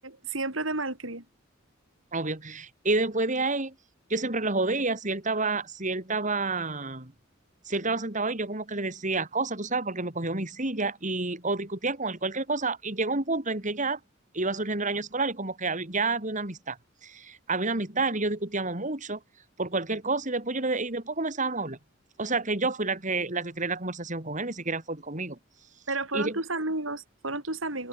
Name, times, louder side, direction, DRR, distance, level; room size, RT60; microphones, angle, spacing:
voice 1, 0.0-1.2 25.9-27.9, right 2 dB, 90° right, 7.8 m, -31 dB
voice 2, 2.1-3.7 4.1-7.1 7.7-14.0 14.3-16.8 17.0-19.2 19.6-21.8 22.2-25.4 26.1-26.4, right 3 dB, 40° right, 4.8 m, -29 dB
head